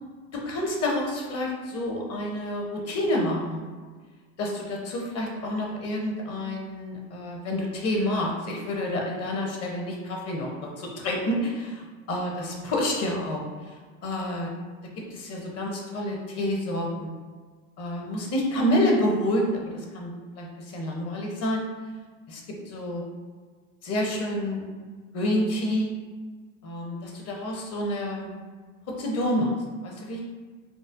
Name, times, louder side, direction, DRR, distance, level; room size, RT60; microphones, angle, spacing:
voice 1, 0.3-3.7 4.4-14.5 15.0-17.1 17.8-21.6 22.3-23.0 23.8-24.6 25.1-25.9 26.6-28.3 28.9-29.5 29.8-30.2, left 1 dB, 35° left, 0 dB, 0.8 m, -28 dB
4.0 x 2.0 x 2.5 m, 1.5 s
hypercardioid pair, 85°, 41 cm